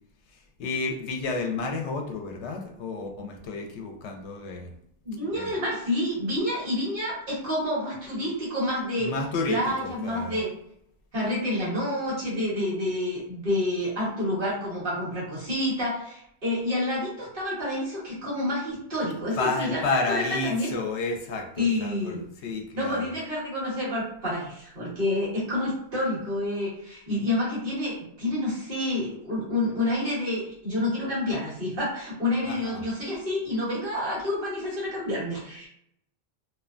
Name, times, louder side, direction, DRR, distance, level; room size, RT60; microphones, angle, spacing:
voice 1, 0.6-4.7 5.3-5.5 9.0-10.4 19.4-23.0 32.4-32.8, left 3 dB, 80° left, 2 dB, 0.9 m, -31 dB
voice 2, 5.0-9.1 9.5-10.5 11.1-19.8 20.1-20.7 21.6-22.2 22.7-35.7, left 1 dB, 55° right, -7 dB, 1.3 m, -28 dB
2.7 x 2.2 x 2.4 m, 0.73 s
omnidirectional pair, 1.1 m